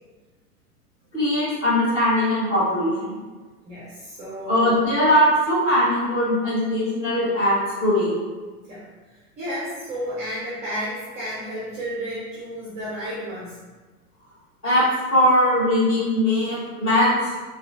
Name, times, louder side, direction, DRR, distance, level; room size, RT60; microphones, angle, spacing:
voice 1, 1.1-3.2 4.5-8.2 14.6-17.3, left 1 dB, 25° left, -9 dB, 1.2 m, -20 dB
voice 2, 3.6-4.7 8.6-8.8 9.4-13.5, equal, 15° right, -8 dB, 0.5 m, -32 dB
4.1 x 2.3 x 2.5 m, 1.3 s
figure-of-eight pair, 95°, 45 cm